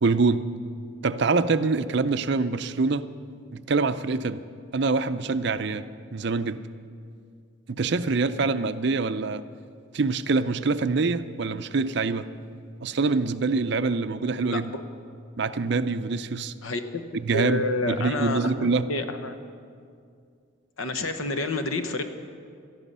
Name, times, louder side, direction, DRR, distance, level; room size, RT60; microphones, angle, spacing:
voice 1, 0.0-0.4 1.0-3.1 3.5-4.4 4.7-5.8 6.1-6.6 7.7-9.4 9.9-12.3 12.8-14.7 15.4-16.5 17.1-18.9, right 4 dB, 55° right, 12 dB, 0.5 m, -25 dB
voice 2, 14.5-14.8 16.6-19.4 20.8-22.0, left 2 dB, 80° left, 8 dB, 1.1 m, -29 dB
19.0 x 13.0 x 5.5 m, 2.3 s
head